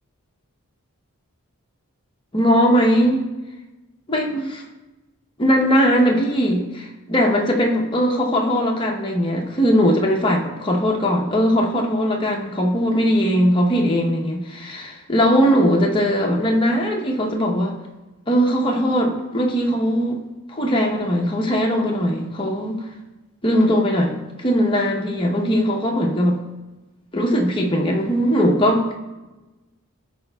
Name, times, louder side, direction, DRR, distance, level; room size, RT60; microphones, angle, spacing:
voice 1, 2.3-3.3 4.1-4.6 5.4-17.8 18.3-20.2 20.5-22.9 23.4-26.4 27.1-28.9, equal, 25° left, 0 dB, 0.8 m, -19 dB
13.0 x 4.9 x 2.3 m, 1.1 s
head